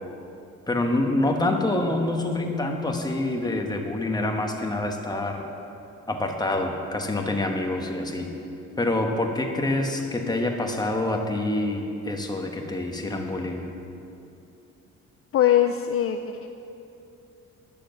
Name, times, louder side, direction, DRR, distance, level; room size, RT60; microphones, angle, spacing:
voice 1, 0.7-5.4 6.1-8.3 8.8-13.6, left 2 dB, 15° left, 2 dB, 1.2 m, -26 dB
voice 2, 15.3-16.5, left 11 dB, 50° left, 7 dB, 0.4 m, -22 dB
10.0 x 7.0 x 6.6 m, 2.7 s
cardioid pair, 90°, 30 cm